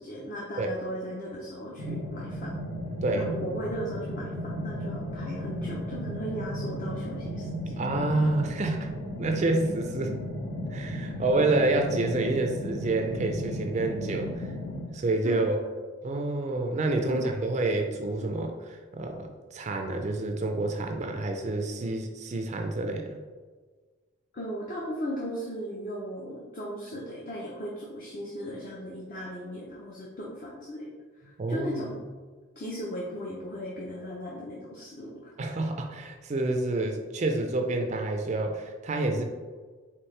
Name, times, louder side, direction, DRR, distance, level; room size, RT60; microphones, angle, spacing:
voice 1, 0.0-2.5 3.1-7.8 11.1-11.2 15.2-15.7 17.1-17.3 24.3-30.9 31.5-32.0 32.6-35.3, equal, 40° left, -4 dB, 0.6 m, -37 dB
sound 1, 1.8-14.8, equal, 85° left, 1.4 m, -35 dB
voice 2, 7.8-8.9 9.2-10.1 10.7-14.3 14.9-15.6 16.0-23.2 31.4-31.8 35.4-39.2, right 2 dB, 35° right, 4 dB, 0.4 m, -28 dB
4.5 x 3.5 x 3.2 m, 1.4 s
head